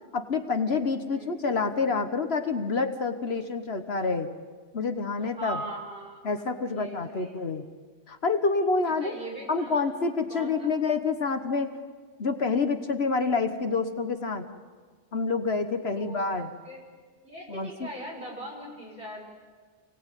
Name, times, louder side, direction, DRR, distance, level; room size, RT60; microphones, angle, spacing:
voice 1, 0.1-4.3 4.7-5.6 6.2-7.6 8.1-9.2 9.5-11.8 12.2-14.5 15.1-16.5 17.5-17.9, left 4 dB, 60° left, 8 dB, 1.5 m, -27 dB
voice 2, 5.4-6.2 6.7-7.4 8.8-9.9 10.3-10.7 15.8-16.8 17.2-19.2, right 1 dB, 45° right, -2 dB, 6.6 m, -40 dB
28.0 x 18.5 x 9.1 m, 1.5 s
omnidirectional pair, 1.2 m